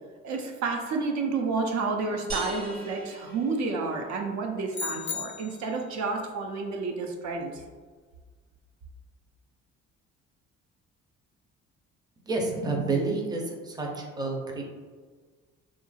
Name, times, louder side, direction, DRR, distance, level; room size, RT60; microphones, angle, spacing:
voice 1, 0.2-7.6, right 4 dB, 65° right, 2 dB, 0.5 m, -30 dB
sound 1, 2.3-4.1, right 2 dB, 30° right, 0.9 m, -38 dB
sound 2, 4.7-5.8, left 6 dB, 40° left, 0.4 m, -35 dB
voice 2, 12.3-14.6, right 3 dB, 15° right, 0 dB, 0.5 m, -29 dB
2.8 x 2.4 x 2.3 m, 1.5 s
supercardioid pair, 70°, 31 cm